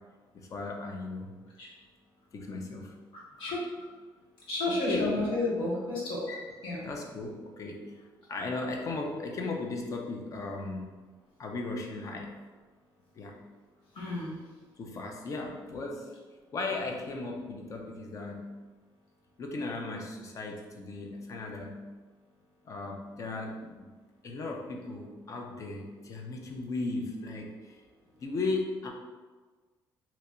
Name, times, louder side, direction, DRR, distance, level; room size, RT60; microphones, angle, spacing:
voice 1, 0.3-1.3 2.3-3.0 4.7-5.2 6.3-6.5 6.8-8.0 8.3-10.9 11.4-12.3 13.2-13.4 14.8-16.1 16.5-18.5 19.4-21.8 22.6-23.9 24.2-27.8 28.2-28.9, left 3 dB, 40° left, 1 dB, 0.5 m, -36 dB
voice 2, 4.5-6.2 6.6-6.8 13.9-14.4, left 2 dB, 85° left, -5 dB, 1.2 m, -31 dB
2.9 x 2.4 x 4.2 m, 1.4 s
cardioid pair, 150°, 9 cm